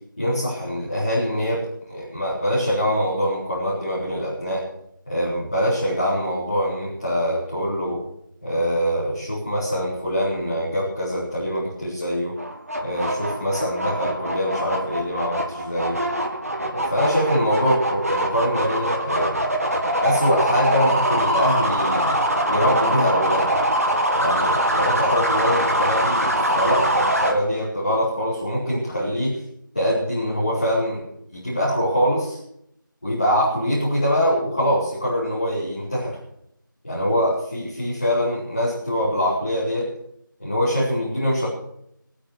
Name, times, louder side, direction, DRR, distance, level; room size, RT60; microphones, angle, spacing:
voice 1, 0.2-1.6 1.9-4.6 5.1-8.0 8.4-12.3 12.8-16.0 16.7-19.4 20.0-22.2 22.5-23.5 24.2-26.3 26.5-29.4 29.7-31.0 31.3-32.4 33.0-36.2 36.8-39.9 40.4-41.5, equal, 20° left, -10 dB, 4.2 m, -23 dB
sound 1, 12.4-27.3, right 1 dB, 45° right, 2.0 m, -23 dB
21.0 x 8.8 x 6.5 m, 0.75 s
figure-of-eight pair, 175°, 11 cm